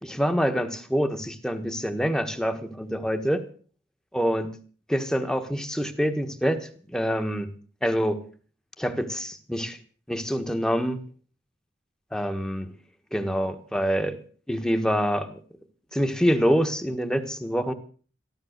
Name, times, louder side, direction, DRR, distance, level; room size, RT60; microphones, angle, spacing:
voice 1, 0.0-3.5 4.1-4.5 4.9-7.5 7.8-8.2 8.8-9.8 10.1-11.0 12.1-12.7 13.1-14.2 14.5-15.4 15.9-17.7, equal, 5° left, 8 dB, 1.4 m, -26 dB
14.0 x 13.0 x 6.6 m, 0.42 s
head